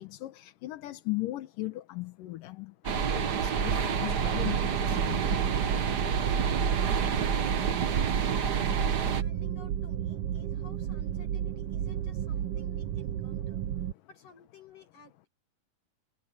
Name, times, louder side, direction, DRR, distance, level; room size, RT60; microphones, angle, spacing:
voice 1, 0.0-5.4, left 18 dB, 80° left, 2.8 m, -38 dB
sound 1, 2.8-9.2, right 6 dB, 65° right, 0.9 m, -28 dB
sound 2, 4.2-13.9, right 10 dB, 90° right, 1.2 m, -33 dB
voice 2, 7.2-7.7 8.2-13.6 14.1-15.3, left 4 dB, 60° left, 8.5 m, -54 dB
omnidirectional pair, 3.8 m